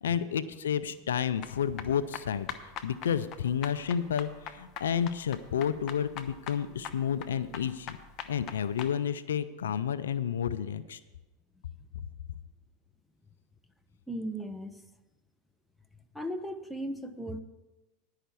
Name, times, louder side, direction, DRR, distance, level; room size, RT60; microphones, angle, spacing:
voice 1, 0.0-2.5 2.8-8.0 8.3-11.0, left 8 dB, 85° left, 14 dB, 0.4 m, -31 dB
sound 1, 1.4-8.9, left 8 dB, 45° left, 0.9 m, -43 dB
voice 2, 14.1-14.8 16.1-17.4, equal, ahead, 7 dB, 0.9 m, -36 dB
10.0 x 5.8 x 8.3 m, 1.1 s
hypercardioid pair, 95°, 0 cm